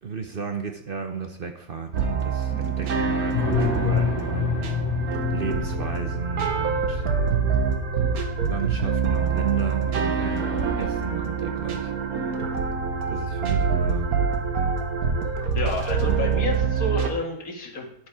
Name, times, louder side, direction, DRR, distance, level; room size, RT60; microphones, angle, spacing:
voice 1, 0.0-4.8 5.3-7.0 8.4-11.9 13.1-14.1, right 5 dB, 45° right, 5 dB, 0.9 m, -33 dB
sound 1, 1.9-17.1, right 5 dB, 85° right, 1.6 m, -25 dB
sound 2, 3.3-7.2 9.1-9.5 9.9-10.0 10.3-10.9, left 6 dB, 55° left, 1.8 m, -28 dB
voice 2, 15.5-18.1, left 2 dB, 75° left, 1 dB, 2.2 m, -29 dB
11.0 x 6.6 x 4.8 m, 0.71 s
omnidirectional pair, 1.5 m